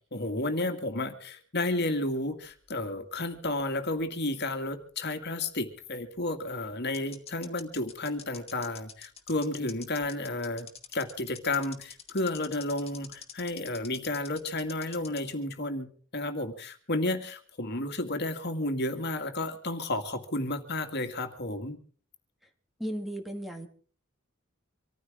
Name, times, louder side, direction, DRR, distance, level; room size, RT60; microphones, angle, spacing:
voice 1, 0.1-10.7 10.9-21.8, left 2 dB, 55° left, 7 dB, 2.3 m, -32 dB
sound 1, 2.7-4.0 4.3-4.4 6.2-6.3 6.9-15.3, left 7 dB, 30° left, 2.3 m, -46 dB
voice 2, 22.8-23.7, equal, ahead, 4 dB, 1.9 m, -35 dB
25.5 x 14.5 x 3.7 m, 0.43 s
head